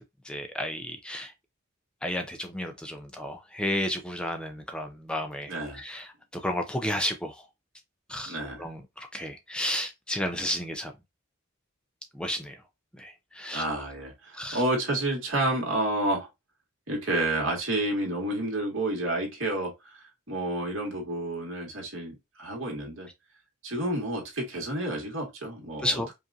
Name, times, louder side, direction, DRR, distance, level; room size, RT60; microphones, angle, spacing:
voice 1, 0.2-1.3 2.0-7.5 8.1-10.9 12.1-12.6 12.9-13.6 14.3-14.6 25.8-26.1, left 1 dB, 5° left, 0.4 m, -32 dB
voice 2, 5.5-5.8 8.3-8.7 13.5-16.3 16.9-23.1 23.6-26.0, right 1 dB, 65° right, 1.9 m, -30 dB
5.2 x 2.5 x 2.6 m
head